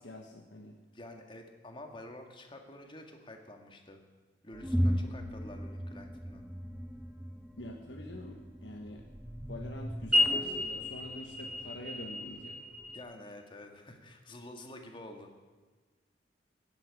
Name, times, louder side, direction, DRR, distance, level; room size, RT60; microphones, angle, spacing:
voice 1, 0.0-0.7 7.6-9.1 9.5-12.6, left 1 dB, 90° left, 1 dB, 1.4 m, -45 dB
voice 2, 0.9-4.0 4.4-6.5 12.9-15.4, left 1 dB, 30° left, 3 dB, 2.0 m, -49 dB
sound 1, 4.5-13.0, left 1 dB, 5° right, 1.7 m, -34 dB
16.0 x 8.7 x 9.8 m, 1.4 s
head